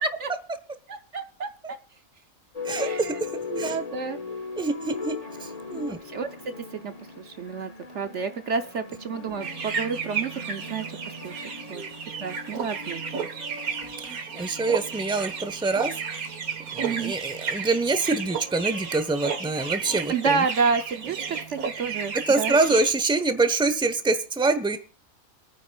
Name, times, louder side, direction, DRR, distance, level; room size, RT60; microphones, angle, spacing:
voice 1, 0.9-1.8 2.7-3.2 3.5-4.2 5.7-6.3 6.6-10.8 11.2-11.4 11.7-11.8 12.2-13.3 16.8-17.1 20.1-22.5, right 5 dB, 60° right, 8 dB, 1.0 m, -30 dB
sound 1, 2.5-15.9, left 5 dB, 25° left, 1.4 m, -39 dB
voice 2, 2.6-3.1 3.6-3.8 4.6-6.0 11.7-11.9 14.0-15.9 16.7-20.4 22.1-24.8, right 3 dB, 5° right, 10 dB, 0.9 m, -25 dB
sound 2, 9.4-22.9, right 6 dB, 75° right, 1.9 m, -33 dB
28.0 x 9.5 x 2.4 m, 0.36 s
omnidirectional pair, 1.5 m